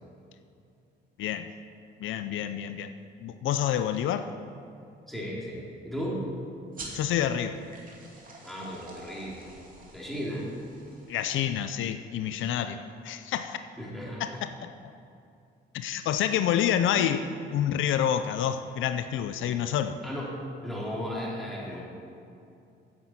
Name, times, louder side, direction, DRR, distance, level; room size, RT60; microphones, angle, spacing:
voice 1, 1.2-1.5 2.0-4.3 6.9-7.6 11.1-13.6 14.2-14.9 15.7-20.0, left 9 dB, 80° left, 10 dB, 0.5 m, -28 dB
voice 2, 5.1-6.2 8.4-9.4 9.9-10.5 13.8-14.2 20.0-20.3 20.6-21.8, equal, ahead, -5 dB, 3.3 m, -35 dB
sound 1, 6.7-11.8, right 2 dB, 45° right, 2.6 m, -47 dB
9.7 x 7.9 x 7.4 m, 2.5 s
cardioid pair, 90°, 20 cm